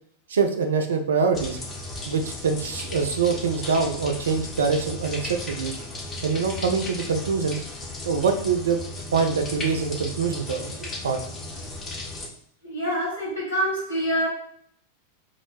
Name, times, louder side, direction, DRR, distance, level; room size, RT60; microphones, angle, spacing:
voice 1, 0.3-1.6 2.1-5.7 6.2-7.6 8.0-8.8 9.1-11.2, right 5 dB, 65° right, 6 dB, 0.4 m, -24 dB
sound 1, 1.3-12.3, left 2 dB, 20° left, 0.7 m, -35 dB
voice 2, 12.6-14.3, equal, 70° left, -6 dB, 1.3 m, -26 dB
2.4 x 2.0 x 3.1 m, 0.65 s
figure-of-eight pair, 90°, 0 cm